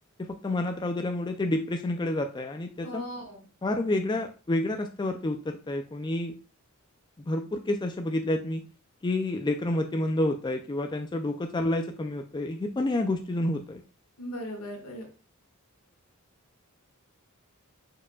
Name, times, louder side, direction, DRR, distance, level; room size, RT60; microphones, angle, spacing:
voice 1, 0.2-3.0 3.6-6.3 7.3-8.6 9.0-13.8, left 1 dB, 20° left, 4 dB, 0.4 m, -29 dB
voice 2, 2.8-3.4 14.2-15.1, equal, 80° left, 0 dB, 1.7 m, -38 dB
4.7 x 4.7 x 2.3 m, 0.34 s
head